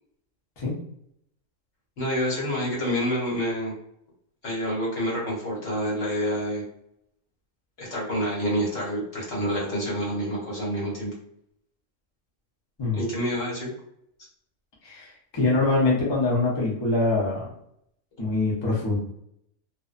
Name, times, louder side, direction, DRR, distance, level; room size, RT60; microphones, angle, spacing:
voice 1, 2.0-3.7 4.4-6.6 7.8-11.1 12.9-13.7, equal, 75° left, -5 dB, 1.4 m, -28 dB
voice 2, 14.8-17.5 18.2-19.0, left 3 dB, 30° left, -4 dB, 0.6 m, -24 dB
2.6 x 2.1 x 2.4 m, 0.74 s
omnidirectional pair, 1.4 m